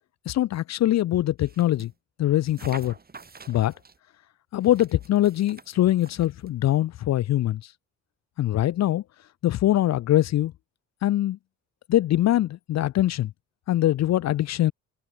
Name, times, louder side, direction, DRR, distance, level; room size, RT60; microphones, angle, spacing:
voice 1, 0.3-1.9 2.2-2.9 3.5-3.7 4.5-7.7 8.4-9.0 9.4-10.5 11.0-11.4 11.9-13.3 13.7-14.7, left 13 dB, 60° left, 0.6 m, -23 dB
sound 1, 1.4-1.9 2.5-4.0 4.6-6.5, right 4 dB, 30° right, 5.6 m, -47 dB
cardioid pair, 90°, 30 cm